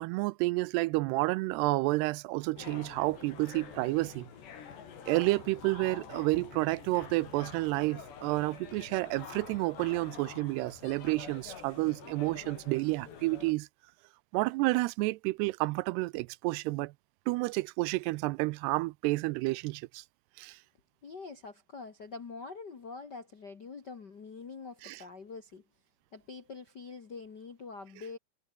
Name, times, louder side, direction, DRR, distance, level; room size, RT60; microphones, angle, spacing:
voice 1, 0.0-4.3 5.1-13.7 14.3-16.9 17.3-20.0 20.4-20.6 24.8-25.0, right 22 dB, 85° right, 2.6 m, -30 dB
sound 1, 2.6-13.5, left 7 dB, 85° left, 6.0 m, -47 dB
voice 2, 21.0-25.6 26.1-28.2, left 4 dB, 55° left, 1.1 m, -45 dB
omnidirectional pair, 4.8 m